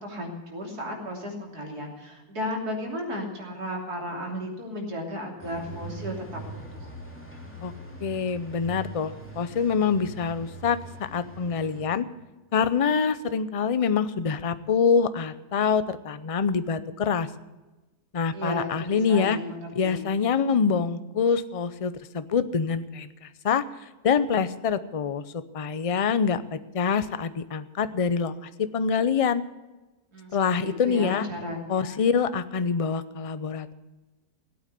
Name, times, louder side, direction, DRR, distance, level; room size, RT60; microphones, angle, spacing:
voice 1, 0.0-6.9 18.3-20.1 30.1-32.0, equal, 75° right, 0 dB, 3.6 m, -34 dB
sound 1, 5.4-11.9, right 2 dB, 10° left, 2.6 m, -42 dB
voice 2, 8.0-10.8 11.1-12.0 12.5-17.3 18.1-19.4 19.7-23.6 24.0-29.4 30.3-31.3 31.7-33.7, left 6 dB, 50° left, 13 dB, 0.4 m, -25 dB
17.0 x 8.9 x 8.3 m, 1.1 s
omnidirectional pair, 1.6 m